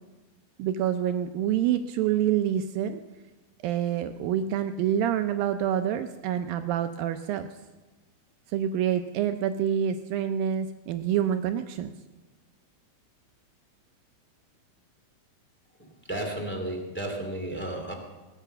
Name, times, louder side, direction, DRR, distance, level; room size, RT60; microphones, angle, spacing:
voice 1, 0.6-3.0 3.6-7.5 8.5-11.9, right 10 dB, 80° right, 7 dB, 2.2 m, -27 dB
voice 2, 15.8-17.9, right 1 dB, 5° left, 0 dB, 1.4 m, -33 dB
19.0 x 9.1 x 6.8 m, 1.2 s
omnidirectional pair, 4.5 m